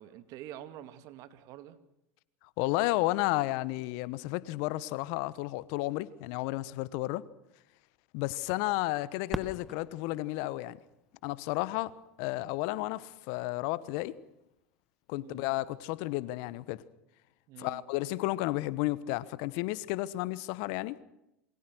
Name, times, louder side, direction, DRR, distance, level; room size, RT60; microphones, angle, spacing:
voice 1, 0.0-1.8 15.1-15.5 17.5-17.8, right 12 dB, 55° right, 2.5 m, -47 dB
voice 2, 2.6-7.2 8.1-10.8 11.2-11.9 12.2-14.2 15.1-16.8 17.6-21.0, left 18 dB, 65° left, 1.3 m, -32 dB
Fireworks, 9.3-12.0 12.7-12.8 13.5-14.0 15.9-16.0, equal, 5° right, 1.7 m, -42 dB
27.5 x 23.5 x 6.3 m
hypercardioid pair, 90°, 7 cm